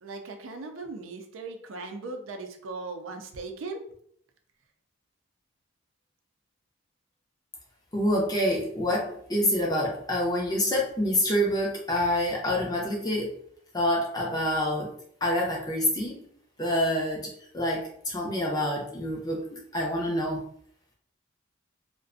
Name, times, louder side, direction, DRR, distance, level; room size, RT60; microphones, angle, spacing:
voice 1, 0.0-3.8, right 3 dB, 80° right, 4 dB, 0.5 m, -38 dB
voice 2, 7.9-13.4 13.7-14.9 15.2-16.2 16.6-20.4, left 1 dB, 20° left, -2 dB, 0.5 m, -27 dB
2.4 x 2.1 x 2.4 m, 0.64 s
head